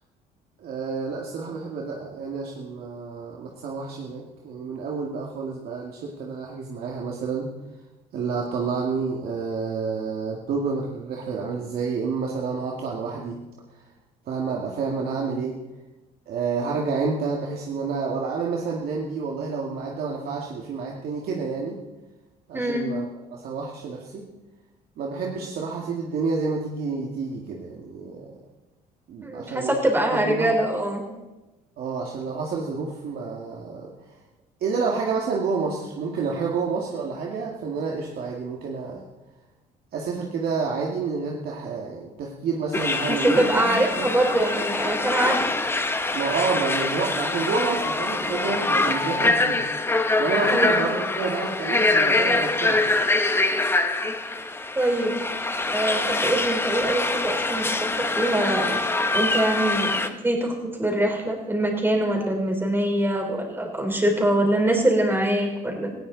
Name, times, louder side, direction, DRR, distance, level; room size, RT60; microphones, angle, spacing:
voice 1, 0.6-7.5 8.1-13.4 13.7-13.8 14.3-15.6 16.3-21.8 22.5-23.1 23.3-24.2 25.0-28.4 29.1-29.8 30.1-30.5 31.8-33.9 34.6-39.1 39.9-44.1 46.1-49.6 50.2-53.0, right 4 dB, 65° right, -1 dB, 2.2 m, -29 dB
voice 2, 22.5-22.9 29.2-31.0 43.1-45.4 50.5-50.8 54.8-55.2 55.7-58.8 59.1-65.9, right 1 dB, 10° right, 1 dB, 4.2 m, -24 dB
sound 1, 42.7-60.1, left 2 dB, 15° left, 1.1 m, -24 dB
18.5 x 16.0 x 4.1 m, 1.1 s
cardioid pair, 110°, 17 cm